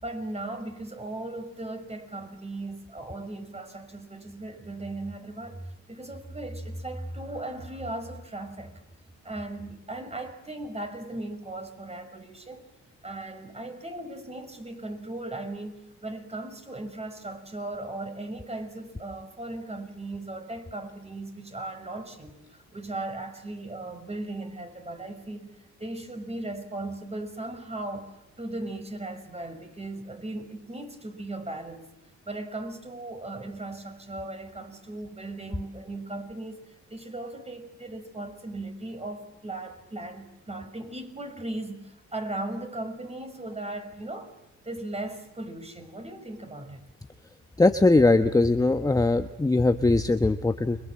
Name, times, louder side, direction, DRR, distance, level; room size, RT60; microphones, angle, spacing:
voice 1, 0.0-8.7 9.2-12.6 13.0-25.5 25.8-28.1 28.4-31.9 32.2-36.6 36.9-44.3 44.6-46.8, right 2 dB, 20° right, 6 dB, 5.9 m, -37 dB
voice 2, 47.6-50.8, left 2 dB, 10° left, 8 dB, 1.1 m, -21 dB
29.5 x 23.5 x 7.5 m, 0.89 s
cardioid pair, 90°, 30 cm